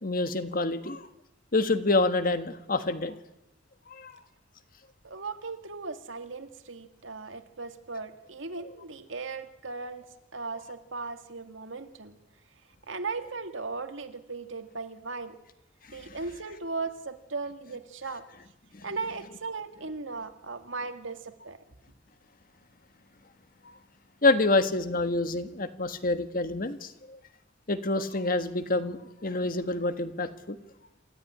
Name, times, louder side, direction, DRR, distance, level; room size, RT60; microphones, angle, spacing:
voice 1, 0.0-1.1 1.5-3.1 3.9-4.1 15.9-16.2 18.7-18.9 24.2-27.2 27.7-30.6, left 2 dB, 45° left, 10 dB, 1.4 m, -27 dB
voice 2, 5.0-10.0 10.3-12.2 12.9-15.4 15.9-18.3 18.8-21.6, right 4 dB, 85° right, 8 dB, 1.9 m, -37 dB
27.0 x 13.5 x 9.9 m, 0.88 s
head